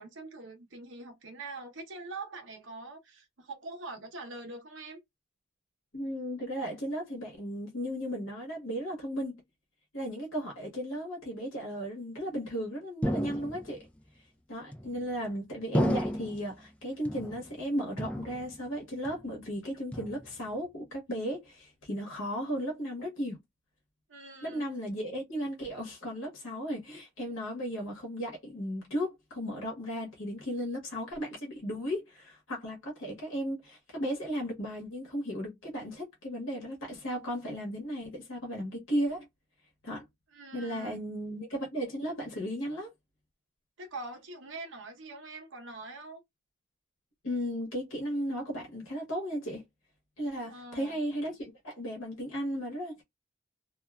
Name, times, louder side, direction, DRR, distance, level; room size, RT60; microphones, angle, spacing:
voice 1, 0.0-5.0 24.1-24.6 40.3-41.0 43.8-46.2 50.5-51.0, right 3 dB, 65° right, 0.9 m, -44 dB
voice 2, 5.9-9.4 9.9-13.9 14.5-23.4 24.4-39.3 39.8-40.0 40.5-42.9 47.2-49.6 50.2-53.0, equal, 75° left, 1.0 m, -35 dB
sound 1, 13.0-13.9 14.7-15.2 15.7-16.5 17.1-17.7 18.0-18.8 19.0-19.5 19.9-20.5, equal, 5° left, 0.4 m, -33 dB
2.5 x 2.3 x 2.3 m
head